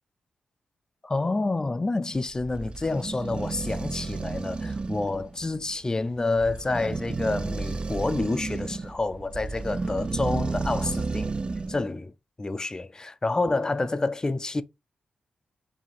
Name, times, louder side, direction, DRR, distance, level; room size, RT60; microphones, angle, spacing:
voice 1, 1.0-11.4 11.7-14.6, left 3 dB, 25° left, 0.4 m, -28 dB
sound 1, 2.1-11.8, right 3 dB, 40° right, 0.4 m, -32 dB
4.8 x 2.7 x 3.2 m
supercardioid pair, 50°, 3 cm